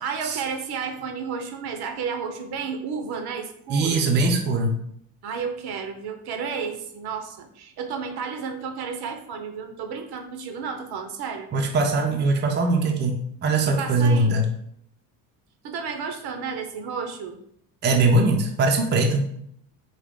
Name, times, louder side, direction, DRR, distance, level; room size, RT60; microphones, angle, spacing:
voice 1, 0.0-4.1 5.2-11.5 13.7-14.3 15.6-17.4, right 6 dB, 55° right, 6 dB, 0.7 m, -32 dB
voice 2, 3.7-4.8 11.5-14.5 17.8-19.2, right 2 dB, 25° right, 2 dB, 0.5 m, -21 dB
3.7 x 2.4 x 3.6 m, 0.69 s
supercardioid pair, 95°, 46 cm